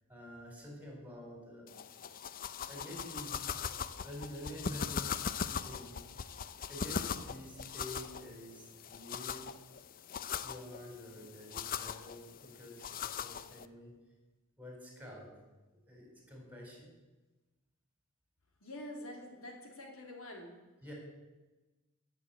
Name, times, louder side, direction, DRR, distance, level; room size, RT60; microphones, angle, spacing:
voice 1, 0.1-1.8 2.6-3.5 4.0-6.3 6.7-9.5 10.4-13.9 14.6-15.3 15.7-16.9 20.8-20.9, equal, 5° right, 0 dB, 4.0 m, -48 dB
sound 1, 1.7-13.7, left 7 dB, 40° left, 0.5 m, -40 dB
voice 2, 18.6-20.5, left 1 dB, 65° left, 1 dB, 2.8 m, -46 dB
15.5 x 6.9 x 8.7 m, 1.2 s
head